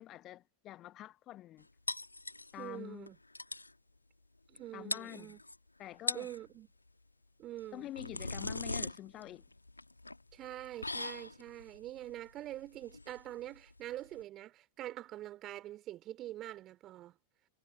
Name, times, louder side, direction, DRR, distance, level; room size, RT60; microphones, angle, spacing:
voice 1, 0.0-1.7 2.5-3.1 4.7-5.3 5.8-6.3 7.7-9.4, left 14 dB, 35° left, 1.3 m, -47 dB
sound 1, 1.9-2.8 3.1-3.2 3.4-3.7 4.6-4.7 4.9-5.6 5.9-6.4 7.6-14.2, left 2 dB, 85° left, 1.6 m, -41 dB
voice 2, 2.6-3.2 4.5-5.4 6.1-6.7 7.4-7.9 10.3-17.2, right 14 dB, 35° right, 3.4 m, -45 dB
figure-of-eight pair, 90°, 0 cm